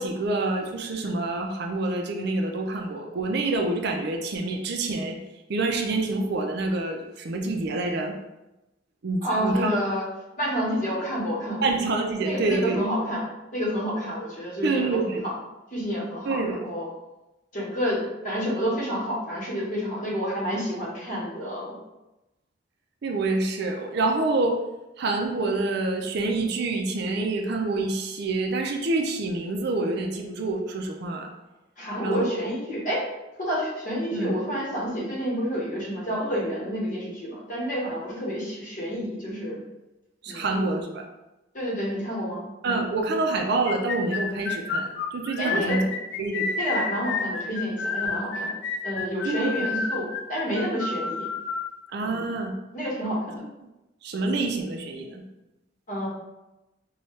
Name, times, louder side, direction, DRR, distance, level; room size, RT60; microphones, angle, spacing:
voice 1, 0.0-5.2 5.5-8.1 9.0-9.7 11.6-12.8 14.6-15.2 16.3-16.7 23.0-24.6 25.0-31.3 32.0-32.3 34.1-34.3 40.2-41.0 42.6-45.9 46.2-46.5 49.2-49.6 51.9-52.5 54.0-55.2, right 2 dB, 55° right, 2 dB, 0.4 m, -27 dB
voice 2, 9.2-10.0 10.4-11.7 12.2-13.2 13.5-15.3 15.7-16.9 17.5-21.8 31.8-33.0 33.4-39.6 40.3-40.5 41.5-42.8 45.4-45.8 46.6-48.5 48.8-51.3 52.0-52.3 52.7-53.4 55.9-56.1, equal, 45° left, -5 dB, 1.3 m, -29 dB
sound 1, 43.7-51.7, left 4 dB, 65° left, 0.4 m, -30 dB
4.1 x 2.3 x 3.2 m, 0.98 s
head